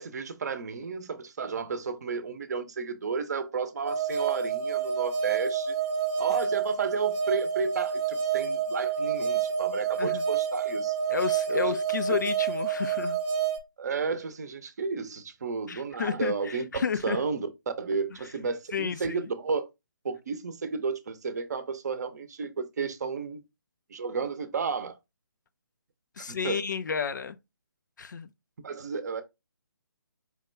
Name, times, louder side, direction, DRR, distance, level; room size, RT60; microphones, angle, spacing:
voice 1, 0.0-5.8 6.2-11.0 11.5-11.7 12.1-12.2 13.8-16.6 17.0-17.5 17.8-19.7 20.0-23.4 23.9-25.0 26.3-26.6 28.6-29.2, right 5 dB, 50° right, 0.6 m, -32 dB
sound 1, 3.8-13.6, right 7 dB, 15° right, 0.4 m, -28 dB
voice 2, 11.1-13.2 15.7-17.2 18.7-19.2 26.2-27.4 28.0-28.3, left 6 dB, 60° left, 0.4 m, -31 dB
4.7 x 2.2 x 3.2 m
figure-of-eight pair, 145°, 11 cm